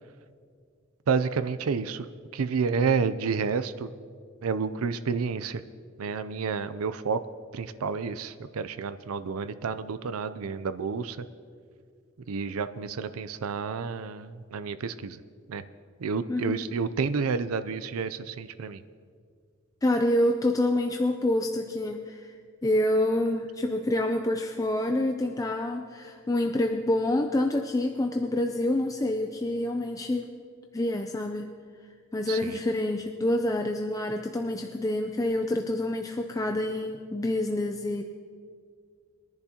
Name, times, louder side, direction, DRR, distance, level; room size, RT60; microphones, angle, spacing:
voice 1, 1.1-2.1 2.3-3.9 4.4-5.6 6.0-7.2 7.5-11.3 12.3-15.2 15.5-15.6 16.0-18.8 32.3-32.6, right 5 dB, 85° right, 12 dB, 0.5 m, -30 dB
voice 2, 16.3-16.7 19.8-22.3 22.6-30.3 30.7-31.5 32.1-38.0, left 1 dB, 15° left, 4 dB, 0.4 m, -27 dB
21.5 x 10.5 x 2.9 m, 2.1 s
head